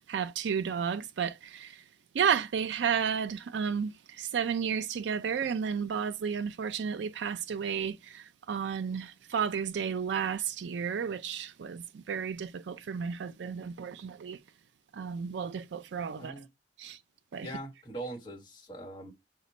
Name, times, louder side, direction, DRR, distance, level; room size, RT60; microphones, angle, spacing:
voice 1, 0.1-1.7 2.1-14.4 14.9-16.3 16.8-17.0 17.3-17.5, right 7 dB, 80° right, 0.4 m, -32 dB
voice 2, 16.2-16.5 17.4-19.1, right 1 dB, 25° left, 1.2 m, -41 dB
5.8 x 2.2 x 4.1 m
head